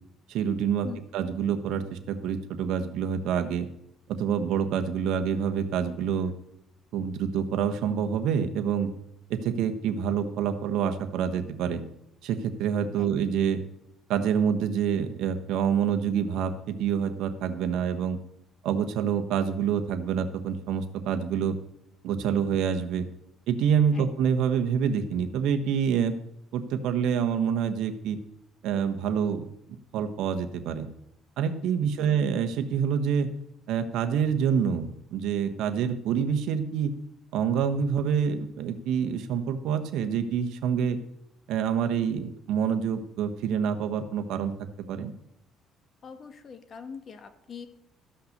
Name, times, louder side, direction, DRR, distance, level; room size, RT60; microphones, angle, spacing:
voice 1, 0.3-0.9 1.1-3.7 4.1-6.3 6.9-8.9 9.3-11.8 12.2-13.6 14.1-18.2 18.6-21.6 22.0-23.1 23.5-26.1 26.5-28.2 28.6-29.5 29.9-30.9 31.4-33.3 33.7-36.9 37.3-41.0 41.5-44.5 44.9-45.1, right 7 dB, 75° right, 7 dB, 1.2 m, -27 dB
voice 2, 31.8-32.1 46.0-47.7, left 6 dB, 40° left, 8 dB, 1.4 m, -43 dB
14.0 x 5.8 x 6.6 m, 0.80 s
cardioid pair, 115°, 0 cm